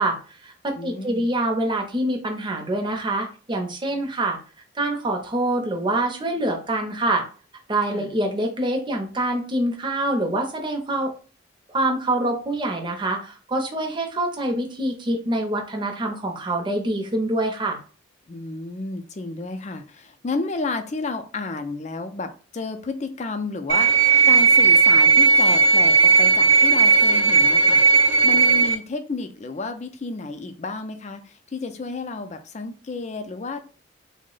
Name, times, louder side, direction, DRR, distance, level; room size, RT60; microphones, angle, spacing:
voice 1, 0.0-4.4 4.7-7.2 7.7-11.1 11.7-17.8, right 1 dB, 25° right, 2 dB, 0.6 m, -25 dB
voice 2, 0.8-1.3 7.9-8.1 18.3-33.6, left 3 dB, 35° left, 7 dB, 0.4 m, -31 dB
sound 1, 23.7-28.7, right 5 dB, 70° right, 0.5 m, -16 dB
3.6 x 2.1 x 3.8 m, 0.37 s
head